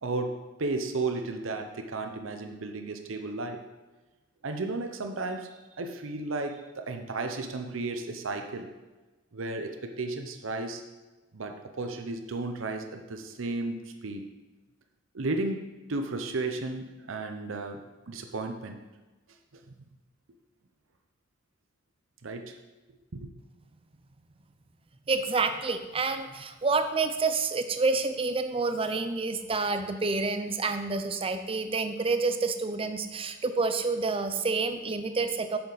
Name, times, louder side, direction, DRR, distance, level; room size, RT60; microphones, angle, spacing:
voice 1, 0.0-3.6 4.4-8.7 9.3-10.9 11.3-14.3 15.1-18.8 19.7-19.8 22.2-22.6 23.1-23.3, right 3 dB, 90° right, 5 dB, 0.8 m, -34 dB
voice 2, 25.1-35.6, right 3 dB, 30° right, 8 dB, 0.6 m, -28 dB
8.6 x 7.0 x 4.0 m, 1.2 s
head